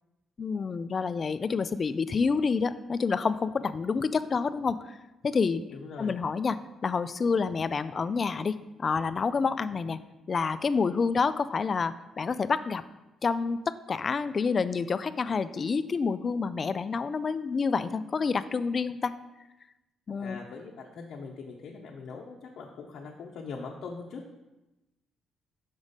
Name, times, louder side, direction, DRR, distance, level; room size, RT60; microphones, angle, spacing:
voice 1, 0.4-5.0 5.2-5.7 6.0-10.0 10.3-12.8 13.2-19.1 20.1-20.4, left 5 dB, 40° left, 14 dB, 0.3 m, -28 dB
voice 2, 5.7-6.1 20.2-24.3, left 4 dB, 70° left, -1 dB, 0.7 m, -42 dB
6.1 x 4.0 x 5.1 m, 1.0 s
cardioid pair, 90°, 0 cm